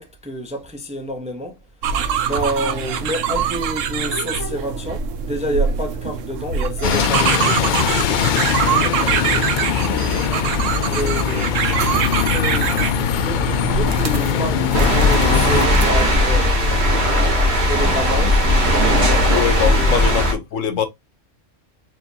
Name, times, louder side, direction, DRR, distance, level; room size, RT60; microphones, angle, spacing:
voice 1, 0.0-1.6 2.2-9.0 10.9-18.5 18.8-20.1, equal, 5° right, 0.6 m, -29 dB
sound 1, 1.8-15.9, right 7 dB, 75° right, 1.0 m, -24 dB
Bus, 6.8-15.7, left 8 dB, 65° left, 0.4 m, -21 dB
voice 2, 9.9-10.3 19.3-20.9, left 8 dB, 80° left, 1.2 m, -23 dB
sound 2, 14.7-20.3, left 1 dB, 55° right, 2.0 m, -17 dB
4.5 x 3.4 x 2.7 m
omnidirectional pair, 1.3 m